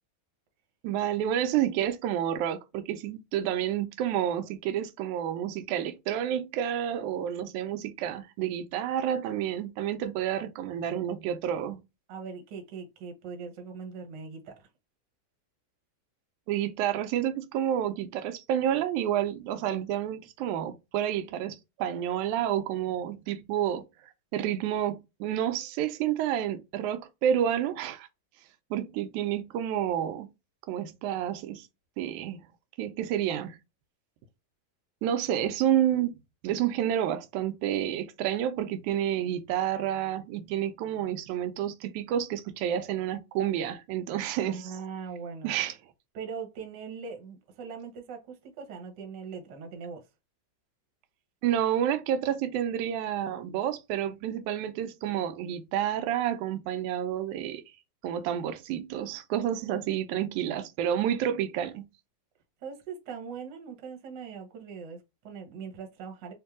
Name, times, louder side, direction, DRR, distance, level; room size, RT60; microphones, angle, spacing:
voice 1, 0.8-11.8 16.5-23.8 24.3-28.1 28.7-30.3 30.7-31.7 32.0-32.4 32.8-33.6 35.0-36.2 36.4-44.6 45.4-45.7 51.4-57.6 58.0-61.9, right 10 dB, 90° right, 2.1 m, -29 dB
voice 2, 12.1-14.7 44.4-45.5 46.1-50.0 62.6-66.3, right 5 dB, 55° right, 1.3 m, -41 dB
4.6 x 2.6 x 3.5 m
omnidirectional pair, 3.4 m